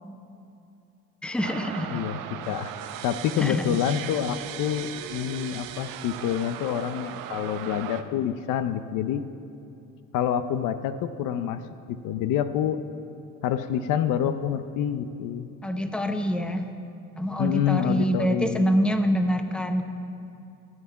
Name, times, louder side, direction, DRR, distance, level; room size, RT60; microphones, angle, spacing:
voice 1, 1.2-2.0 3.3-3.8 15.6-16.7 17.2-19.8, equal, 5° left, 7 dB, 0.7 m, -25 dB
sound 1, 1.4-8.0, right 10 dB, 70° right, 0.7 m, -38 dB
voice 2, 3.0-9.2 10.1-11.6 11.9-12.8 13.4-15.5 17.4-18.8, left 9 dB, 65° left, 11 dB, 0.7 m, -27 dB
13.5 x 8.7 x 5.7 m, 2.7 s
cardioid pair, 105°, 34 cm